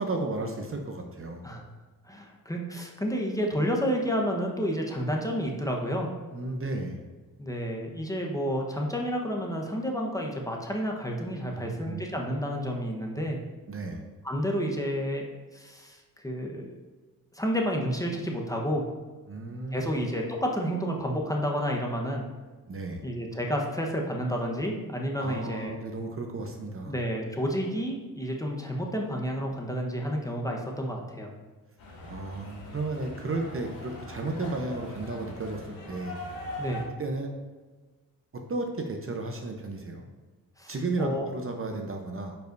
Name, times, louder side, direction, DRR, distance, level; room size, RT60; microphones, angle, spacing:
voice 1, 0.0-1.5 6.3-7.0 11.5-12.1 13.7-14.0 19.3-20.0 22.7-23.0 25.2-26.9 32.1-36.2 37.0-37.3 38.3-40.1 40.7-42.4, right 2 dB, 35° right, 3 dB, 0.8 m, -33 dB
voice 2, 2.0-6.1 7.4-13.4 14.2-15.2 15.5-16.7 17.3-18.8 19.7-22.2 23.0-25.7 26.9-31.3 36.6-36.8 40.6-41.3, equal, 10° left, 0 dB, 1.1 m, -30 dB
sound 1, 31.8-36.8, left 1 dB, 70° left, 2.2 m, -41 dB
8.9 x 5.4 x 2.6 m, 1.3 s
cardioid pair, 85°, 38 cm